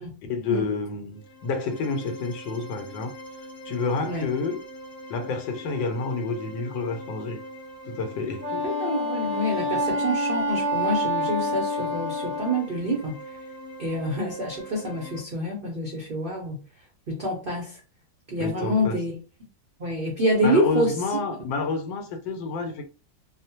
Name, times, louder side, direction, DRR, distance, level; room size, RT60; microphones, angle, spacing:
voice 1, 0.2-3.1 3.6-4.6 5.1-7.4 7.9-8.6 18.4-19.0 20.4-22.9, left 4 dB, 80° left, 1.3 m, -29 dB
sound 1, 1.1-15.2, equal, 60° left, 0.8 m, -42 dB
Wind instrument woodwind instrument, 8.4-12.6, equal, 20° left, 0.8 m, -27 dB
voice 2, 8.6-13.2 13.8-16.6 17.1-17.8 18.3-19.1 19.8-20.9, equal, 75° right, 0.5 m, -27 dB
3.0 x 2.0 x 2.8 m
omnidirectional pair, 2.0 m